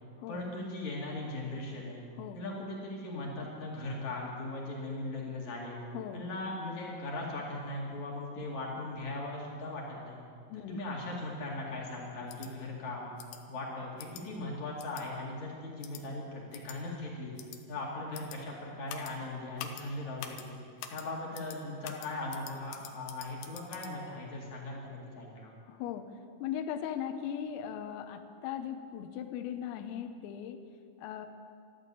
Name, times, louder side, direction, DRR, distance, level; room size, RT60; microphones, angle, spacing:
voice 1, 0.3-2.0 2.3-5.8 6.1-10.2 10.7-13.1 13.5-17.3 17.7-20.6 20.9-25.6, left 2 dB, 45° left, -3 dB, 2.8 m, -39 dB
voice 2, 5.9-6.3 10.5-10.8 25.7-30.7 31.0-31.3, left 9 dB, 90° left, 6 dB, 3.6 m, -38 dB
sound 1, 12.3-12.5 13.2-13.4 14.0-14.2 14.8-15.0 15.8-16.0 16.5-16.8 17.4-17.6 18.1-18.4 18.9-19.1 19.6-19.8 20.2-20.4 20.8-21.0 21.3-21.6 21.8-23.9, left 10 dB, 75° left, 2.9 m, -45 dB
13.5 x 13.0 x 8.3 m, 2.3 s
omnidirectional pair, 5.8 m